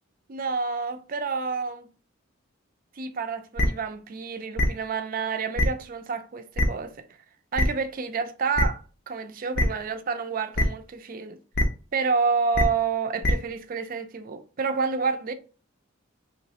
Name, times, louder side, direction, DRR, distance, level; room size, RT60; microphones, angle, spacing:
voice 1, 0.3-1.9 3.0-7.0 7.5-8.8 9.1-11.4 11.9-15.3, right 5 dB, 45° right, 0.4 m, -29 dB
sound 1, 3.6-3.7 4.6-4.7 5.6-5.7 6.6-6.7 7.6-7.7 8.6-8.7 9.6-9.7 10.6-10.7 11.5-11.6 12.5-12.6 13.2-13.3, left 1 dB, 50° left, 0.6 m, -21 dB
3.1 x 3.0 x 2.8 m
head